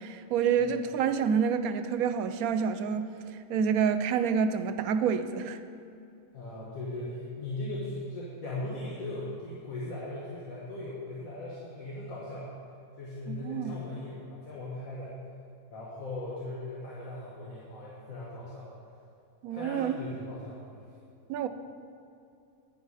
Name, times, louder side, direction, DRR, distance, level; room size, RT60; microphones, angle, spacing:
voice 1, 0.0-3.1 3.5-5.6 13.3-13.7 19.4-20.0 21.3-21.5, right 7 dB, 85° right, 1.1 m, -28 dB
voice 2, 6.3-12.5 13.0-15.2 15.7-18.7 19.5-20.9, left 2 dB, 70° left, 1.9 m, -38 dB
10.5 x 9.6 x 4.9 m
omnidirectional pair, 1.5 m